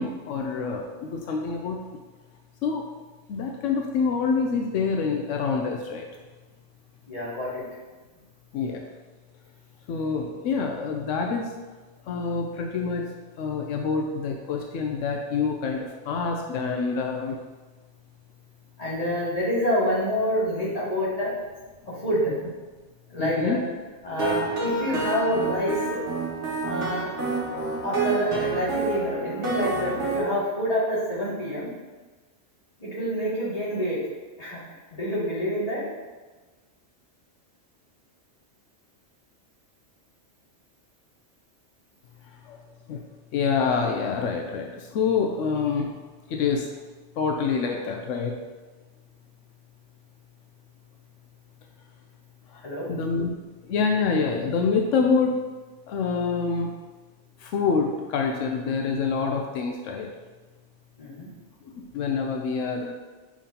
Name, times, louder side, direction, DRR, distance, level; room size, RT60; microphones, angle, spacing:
voice 1, 0.0-1.8 2.6-2.8 3.3-6.1 8.5-8.8 9.9-11.5 12.1-13.1 13.4-17.4 23.2-23.6 42.5-42.6 42.9-43.0 43.3-45.9 46.3-46.7 47.2-48.4 52.5-52.6 52.9-53.3 53.7-55.4 55.9-56.7 57.4-60.1 61.7-62.9, left 5 dB, 85° left, 2 dB, 1.0 m, -26 dB
voice 2, 7.1-7.6 18.8-21.3 22.0-22.3 23.1-23.6 24.0-26.0 26.6-27.1 27.8-31.7 32.8-34.0 34.4-34.6 34.9-35.8 52.6-52.9 61.0-61.3, equal, 30° left, -9 dB, 2.4 m, -27 dB
sound 1, 24.2-30.2, right 3 dB, 70° right, 1.4 m, -28 dB
7.5 x 5.3 x 2.8 m, 1.3 s
omnidirectional pair, 1.2 m